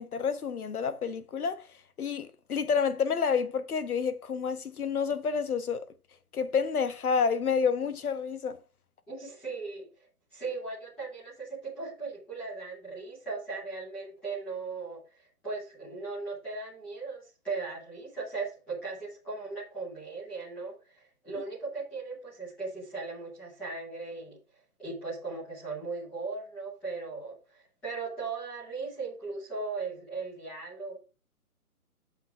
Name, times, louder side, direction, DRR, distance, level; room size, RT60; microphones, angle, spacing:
voice 1, 0.0-1.7 2.0-5.9 6.3-8.6, left 6 dB, 70° left, 1.3 m, -29 dB
voice 2, 9.1-9.9 10.3-24.4 24.8-31.0, right 4 dB, 5° left, 0.9 m, -38 dB
7.2 x 6.1 x 3.5 m
hypercardioid pair, 165°, 46 cm